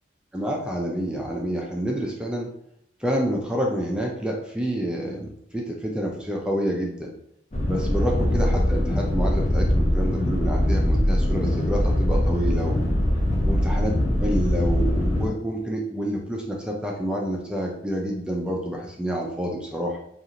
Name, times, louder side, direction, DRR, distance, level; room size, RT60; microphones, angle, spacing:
voice 1, 0.3-2.5 3.0-7.1 7.7-12.9 13.5-13.9 14.2-20.0, equal, 5° right, -1 dB, 0.3 m, -28 dB
sound 1, 7.5-15.3, left 1 dB, 40° left, 0.6 m, -22 dB
2.6 x 2.4 x 2.8 m, 0.71 s
head